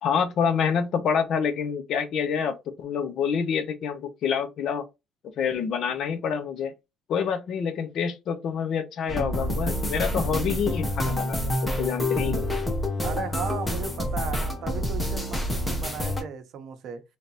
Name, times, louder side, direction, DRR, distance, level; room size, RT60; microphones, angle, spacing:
voice 1, 0.0-4.9 5.2-6.7 7.1-12.5, left 7 dB, 50° left, 0.6 m, -27 dB
sound 1, 9.1-16.2, left 1 dB, 10° left, 0.8 m, -28 dB
voice 2, 13.0-17.0, right 7 dB, 50° right, 0.7 m, -36 dB
3.3 x 2.8 x 4.0 m
cardioid pair, 160°, 0 cm